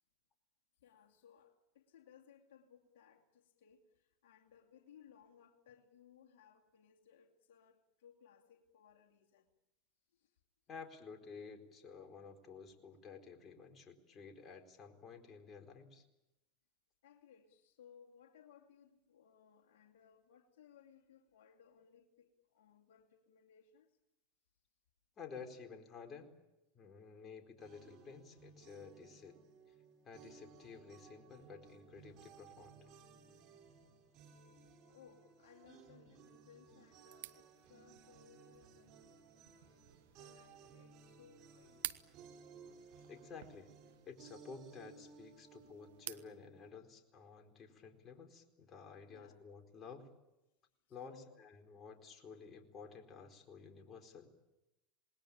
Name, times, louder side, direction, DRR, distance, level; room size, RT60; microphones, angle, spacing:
voice 1, 0.8-9.5 10.1-10.4 17.0-24.0 33.2-33.3 33.7-43.1 49.1-49.4 50.8-51.4, left 8 dB, 70° left, 2 dB, 2.6 m, -64 dB
voice 2, 10.7-16.0 25.2-26.3 26.7-29.4 30.0-32.9 43.1-43.7 44.0-50.1 50.9-54.3, left 5 dB, 35° left, 4 dB, 4.4 m, -53 dB
sound 1, 27.6-46.7, right 5 dB, 50° right, 4.5 m, -60 dB
sound 2, 37.1-46.3, right 13 dB, 75° right, 1.0 m, -53 dB
27.5 x 20.5 x 8.8 m, 0.94 s
hypercardioid pair, 95°, 0 cm